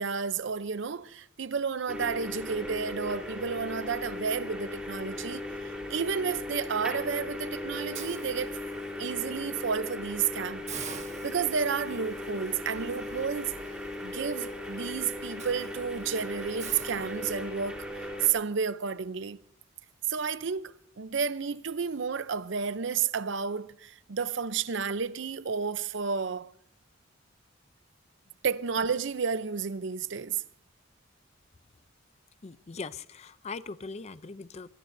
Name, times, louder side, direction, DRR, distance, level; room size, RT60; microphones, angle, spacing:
voice 1, 0.0-8.6 9.0-10.7 11.2-13.5 14.0-17.8 18.2-19.4 20.1-26.5 28.4-30.4, right 6 dB, 65° right, 0.6 m, -31 dB
sound 1, 1.9-18.3, left 1 dB, 5° right, 3.7 m, -38 dB
Hiss, 7.9-9.1 9.5-9.7 10.1-10.2 10.7-17.7, right 7 dB, 35° right, 1.6 m, -47 dB
voice 2, 32.4-34.7, left 4 dB, 35° left, 0.5 m, -40 dB
22.5 x 22.5 x 2.7 m
head